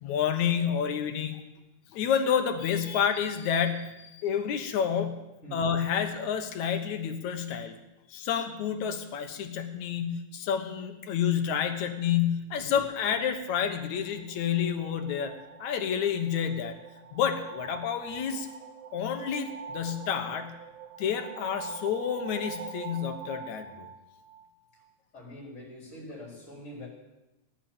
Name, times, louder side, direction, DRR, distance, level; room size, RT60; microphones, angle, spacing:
voice 1, 0.0-1.4 1.9-5.2 5.5-7.8 8.1-15.3 15.6-16.8 17.1-18.5 18.9-20.6 21.0-23.9, left 8 dB, 75° left, 7 dB, 2.5 m, -29 dB
sound 1, 13.3-24.9, right 6 dB, 80° right, 2.2 m, -45 dB
voice 2, 25.1-26.9, equal, 25° left, -3 dB, 4.4 m, -44 dB
17.0 x 10.5 x 7.2 m, 0.98 s
omnidirectional pair, 3.4 m